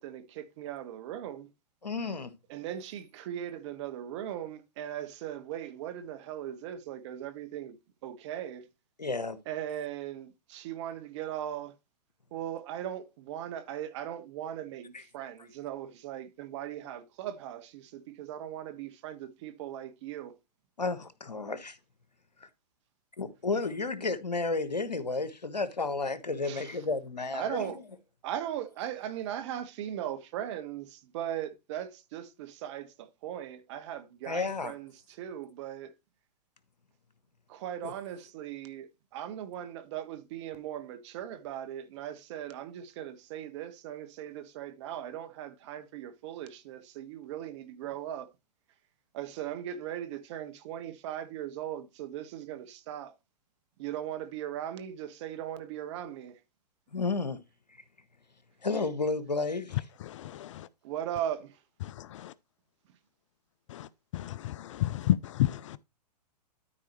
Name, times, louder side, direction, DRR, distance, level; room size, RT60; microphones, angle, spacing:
voice 1, 0.0-1.5 2.5-7.8 8.0-8.7 9.5-11.7 12.3-20.3 26.4-26.8 27.3-27.8 28.2-35.9 37.5-48.3 49.1-53.2 53.8-56.4 60.8-61.6, right 11 dB, 45° right, 1.3 m, -38 dB
voice 2, 1.8-2.3 9.0-9.4 14.9-15.0 20.8-21.8 23.2-27.7 34.3-34.7 37.8-37.9 56.9-57.4 58.6-59.8, left 3 dB, 85° left, 1.3 m, -32 dB
voice 3, 60.0-60.7 61.8-62.3 63.7-63.9 64.1-65.8, left 14 dB, 50° left, 0.5 m, -31 dB
13.0 x 4.7 x 3.0 m
figure-of-eight pair, 115°, 21 cm